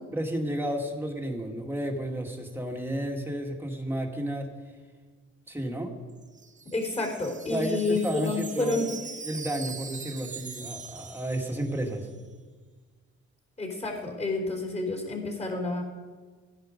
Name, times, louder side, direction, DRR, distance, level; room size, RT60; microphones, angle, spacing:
voice 1, 0.1-4.5 5.5-5.9 7.5-8.9 9.3-12.1, right 1 dB, 5° right, 1 dB, 2.2 m, -32 dB
Wind chime, 6.1-12.1, right 5 dB, 25° right, 0.9 m, -42 dB
voice 2, 6.7-8.9 13.6-15.8, left 2 dB, 20° left, 2 dB, 3.8 m, -29 dB
15.0 x 10.5 x 5.2 m, 1.4 s
cardioid pair, 90°, 30 cm